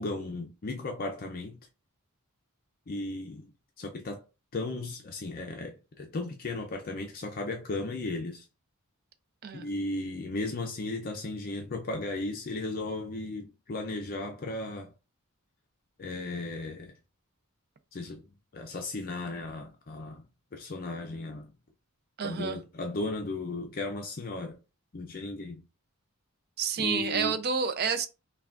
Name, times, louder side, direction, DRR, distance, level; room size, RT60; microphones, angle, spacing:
voice 1, 0.0-1.6 2.9-3.5 3.8-4.3 4.5-8.5 9.5-14.9 16.0-16.9 17.9-18.2 18.5-20.2 20.5-21.5 22.2-24.6 24.9-25.6 26.8-27.4, left 2 dB, 40° left, 0.5 m, -35 dB
voice 2, 22.2-22.6 26.6-28.1, right 6 dB, 45° right, 0.5 m, -29 dB
5.7 x 2.3 x 2.4 m
head